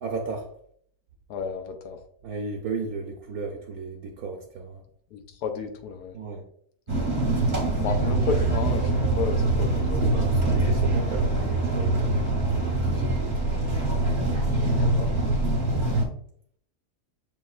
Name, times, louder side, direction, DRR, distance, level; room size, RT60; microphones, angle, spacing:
voice 1, 0.0-0.5 2.2-4.8 6.1-6.5 10.3-12.1 12.6-13.4 15.7-15.9, right 4 dB, 70° right, 1 dB, 1.1 m, -34 dB
voice 2, 1.3-2.0 5.1-6.2 7.8-10.4 14.7-15.1, left 6 dB, 75° left, 6 dB, 1.2 m, -32 dB
sound 1, 6.9-16.0, right 2 dB, 30° right, 1.1 m, -24 dB
7.4 x 3.0 x 2.3 m, 0.64 s
omnidirectional pair, 1.8 m